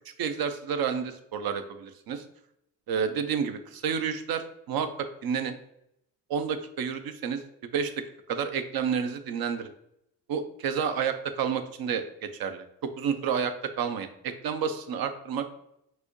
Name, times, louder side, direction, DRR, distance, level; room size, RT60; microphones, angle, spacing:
voice 1, 0.2-2.2 2.9-4.9 5.2-5.5 6.3-7.4 7.7-7.9 8.3-9.7 10.3-12.6 13.0-15.4, right 7 dB, 55° right, 9 dB, 0.7 m, -30 dB
6.0 x 2.7 x 3.0 m, 0.79 s
hypercardioid pair, 50°, 45 cm